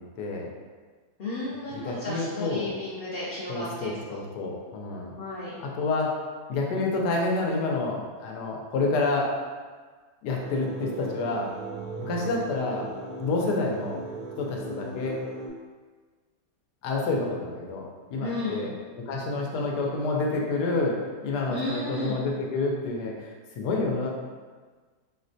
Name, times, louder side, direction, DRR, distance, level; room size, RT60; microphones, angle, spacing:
voice 1, 0.2-0.5 1.7-2.7 3.5-5.1 5.8-6.2 6.5-9.3 10.2-11.5 12.0-12.9 13.2-14.0 14.4-15.2 16.8-17.8 18.1-18.7 19.0-24.1, left 3 dB, 90° left, 0 dB, 1.2 m, -28 dB
voice 2, 1.2-3.9 5.2-5.6 18.2-18.6 21.5-22.2, left 2 dB, 65° left, -8 dB, 0.5 m, -33 dB
sound 1, 10.4-15.5, right 3 dB, 85° right, 0.5 m, -38 dB
4.2 x 2.2 x 2.6 m, 1.5 s
omnidirectional pair, 1.7 m